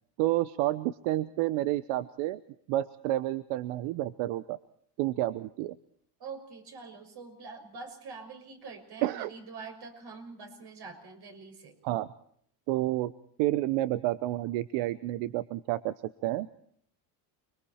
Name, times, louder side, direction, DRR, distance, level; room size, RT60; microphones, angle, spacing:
voice 1, 0.2-2.4 2.7-4.6 5.0-5.8 9.0-9.3 11.8-12.1 12.7-13.1 13.4-15.9 16.2-16.5, right 15 dB, 80° right, 15 dB, 1.0 m, -29 dB
voice 2, 6.2-11.8, right 4 dB, 55° right, 4 dB, 6.3 m, -45 dB
30.0 x 22.0 x 4.3 m, 0.62 s
cardioid pair, 110°, 47 cm